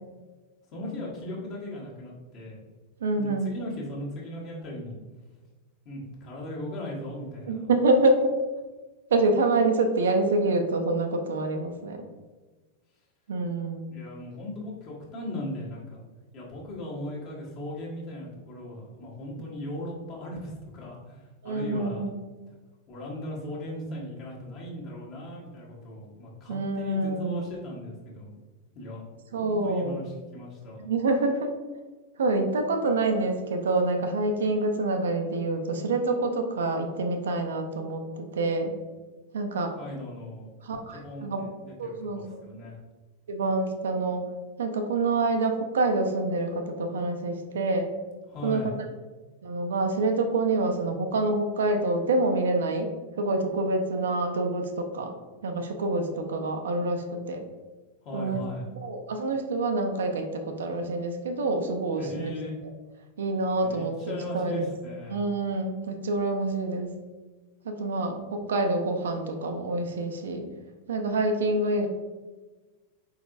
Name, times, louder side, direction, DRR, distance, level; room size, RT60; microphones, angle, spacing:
voice 1, 0.7-2.6 3.2-5.0 5.8-7.7 13.9-16.0 16.3-22.1 22.9-28.4 28.7-29.1 29.4-30.8 39.7-40.5 40.9-42.8 48.3-48.7 58.0-58.7 62.0-62.6 63.6-65.2, left 1 dB, 40° left, -4 dB, 1.4 m, -38 dB
voice 2, 3.0-3.5 7.5-8.3 9.1-12.0 13.3-13.9 21.4-22.2 26.5-27.5 29.3-30.0 30.8-31.5 32.2-38.8 39.3-39.7 40.6-41.4 41.8-42.4 43.3-44.2 44.6-47.9 48.4-48.9 49.4-52.9 53.2-55.1 55.4-57.4 58.1-58.4 58.8-62.3 63.2-64.7 65.1-66.9 67.6-70.5 70.9-71.9, right 2 dB, 65° right, 5 dB, 0.5 m, -27 dB
4.6 x 4.0 x 2.5 m, 1.3 s
figure-of-eight pair, 90°, 0 cm